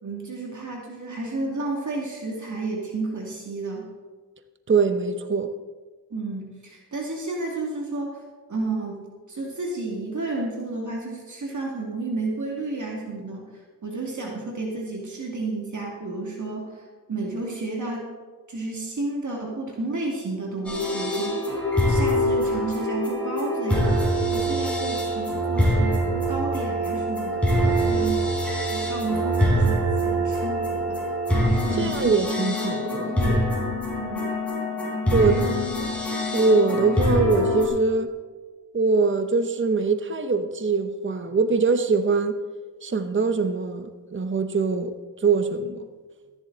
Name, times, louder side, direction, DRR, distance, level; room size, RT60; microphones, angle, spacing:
voice 1, 0.0-3.9 6.1-8.2 8.5-9.0 9.3-13.5 13.8-16.8 17.1-18.1 18.5-21.5 21.9-24.0 24.3-28.3 28.7-31.0 31.7-32.1 33.9-34.3 35.1-35.6, right 3 dB, 45° right, 2.4 m, -31 dB
voice 2, 4.7-5.5 31.8-33.5 35.1-35.3 35.8-35.9 36.3-38.1 38.7-42.4 42.8-45.9, right 4 dB, 30° right, 0.8 m, -23 dB
sound 1, 20.6-37.7, equal, 5° left, 4.6 m, -24 dB
13.5 x 11.0 x 3.9 m
cardioid pair, 80°, 40 cm